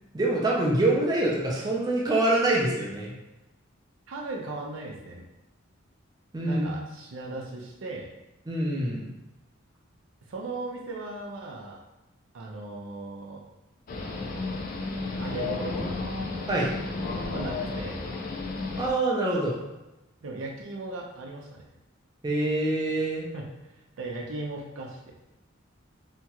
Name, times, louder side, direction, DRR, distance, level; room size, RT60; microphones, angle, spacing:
voice 1, 0.1-3.1 6.3-6.7 8.5-9.1 16.5-16.7 18.8-19.6 22.2-23.3, right 2 dB, 20° right, -4 dB, 0.5 m, -25 dB
voice 2, 4.1-5.2 6.4-8.1 10.2-11.8 12.3-13.4 15.2-16.2 17.3-18.0 20.2-21.6 23.3-23.5 24.0-25.1, right 2 dB, 70° right, 0 dB, 0.5 m, -37 dB
sound 1, 13.9-18.9, left 3 dB, 45° left, 0.4 m, -32 dB
2.9 x 2.3 x 2.8 m, 1.0 s
head